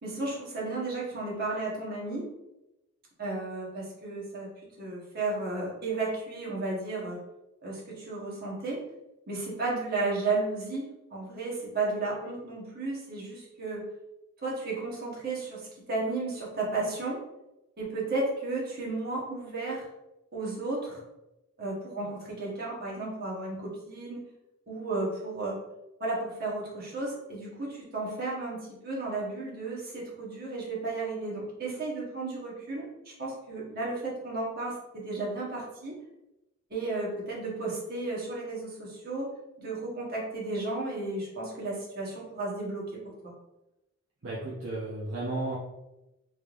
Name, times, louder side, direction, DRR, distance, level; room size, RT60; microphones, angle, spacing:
voice 1, 0.0-2.3 3.2-4.5 4.8-7.2 7.6-8.8 9.3-13.8 14.4-15.6 15.9-17.2 17.8-19.9 20.3-21.0 21.6-24.2 24.7-25.6 26.0-36.0 36.7-39.3 39.6-43.3, right 3 dB, 50° right, -4 dB, 1.1 m, -33 dB
voice 2, 44.2-45.6, right 2 dB, 65° right, -5 dB, 0.7 m, -33 dB
3.5 x 3.2 x 2.4 m, 0.94 s
head